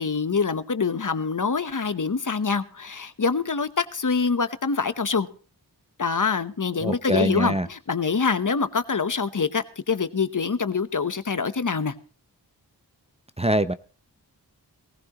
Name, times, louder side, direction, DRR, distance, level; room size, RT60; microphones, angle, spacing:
voice 1, 0.0-5.3 6.0-11.9, left 5 dB, 50° left, 12 dB, 1.1 m, -25 dB
voice 2, 6.8-7.7 13.4-13.7, right 1 dB, 15° right, 13 dB, 0.7 m, -23 dB
19.5 x 15.0 x 3.0 m, 0.39 s
cardioid pair, 40°, 41 cm